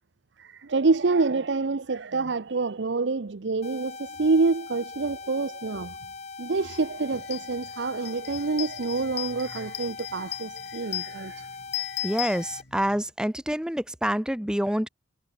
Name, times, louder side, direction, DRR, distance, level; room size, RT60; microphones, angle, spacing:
voice 1, 0.4-5.9 6.4-11.5, right 3 dB, 70° right, 0.7 m, -27 dB
sound 1, 3.6-12.6, left 4 dB, 35° left, 1.0 m, -41 dB
sound 2, 6.7-6.8 7.2-13.0, left 13 dB, 60° left, 3.7 m, -37 dB
voice 2, 12.0-14.9, equal, 5° right, 0.8 m, -27 dB
head